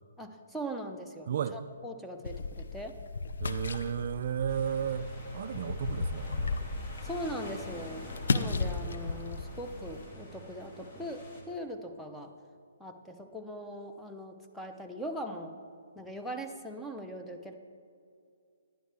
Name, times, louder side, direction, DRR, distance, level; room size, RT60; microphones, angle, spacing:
voice 1, 0.2-3.0 7.0-12.3 12.8-15.6 15.9-17.6, equal, ahead, 3 dB, 0.7 m, -40 dB
voice 2, 1.3-1.6 3.4-6.6, right 8 dB, 55° right, 12 dB, 0.3 m, -33 dB
sound 1, 2.2-10.1, left 4 dB, 70° left, 0.6 m, -35 dB
sound 2, 4.5-11.4, left 1 dB, 35° left, 2.1 m, -46 dB
11.0 x 10.0 x 3.4 m, 2.3 s
hypercardioid pair, 140°, 0 cm